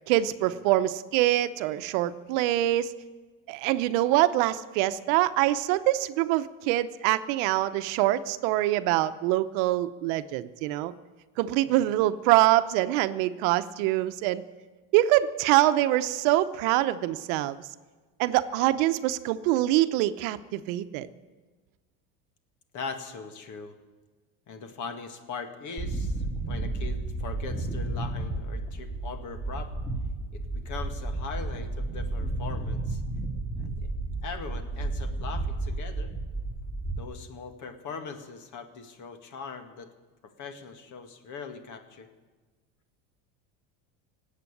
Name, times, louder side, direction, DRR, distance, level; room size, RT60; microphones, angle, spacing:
voice 1, 0.1-2.9 3.5-10.9 11.4-14.4 14.9-17.6 18.2-21.1, right 15 dB, 75° right, 12 dB, 0.9 m, -24 dB
voice 2, 22.7-23.8 24.5-29.7 30.3-33.0 33.6-33.9 34.2-36.1 36.9-39.9 40.2-42.1, left 5 dB, 50° left, 7 dB, 2.0 m, -40 dB
sound 1, 25.8-37.0, right 2 dB, 10° left, 3.2 m, -32 dB
18.0 x 8.3 x 9.8 m, 1.3 s
supercardioid pair, 115°, 39 cm